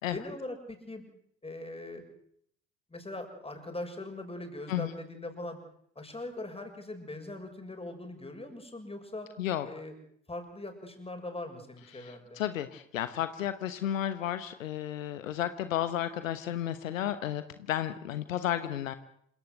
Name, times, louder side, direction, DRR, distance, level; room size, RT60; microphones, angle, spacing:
voice 1, 0.1-1.0 1.4-2.0 2.9-5.6 6.0-9.3 9.6-9.9 10.3-12.4, left 2 dB, 15° left, 4 dB, 6.8 m, -41 dB
voice 2, 11.9-18.9, left 11 dB, 75° left, 12 dB, 1.2 m, -33 dB
27.5 x 16.5 x 8.0 m, 0.69 s
figure-of-eight pair, 60°, 40 cm